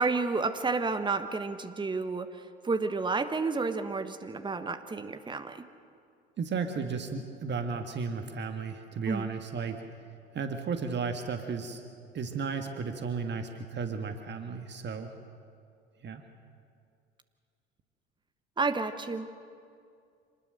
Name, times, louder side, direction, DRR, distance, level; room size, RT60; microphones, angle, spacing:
voice 1, 0.0-5.6 9.1-9.3 18.6-19.3, right 4 dB, 15° right, 9 dB, 1.4 m, -31 dB
voice 2, 6.4-9.8 10.3-11.8 12.1-15.1 16.0-16.2, right 5 dB, 30° right, 6 dB, 1.8 m, -34 dB
26.5 x 20.0 x 6.5 m, 2.3 s
figure-of-eight pair, 65°, 34 cm